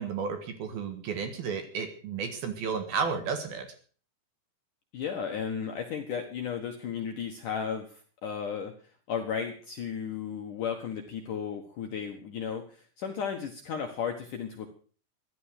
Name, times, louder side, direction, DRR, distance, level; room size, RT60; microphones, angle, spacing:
voice 1, 0.0-3.7, right 6 dB, 60° right, 7 dB, 3.1 m, -32 dB
voice 2, 4.9-8.7 9.1-14.7, left 7 dB, 65° left, 4 dB, 2.2 m, -34 dB
15.0 x 12.0 x 6.6 m, 0.42 s
omnidirectional pair, 5.5 m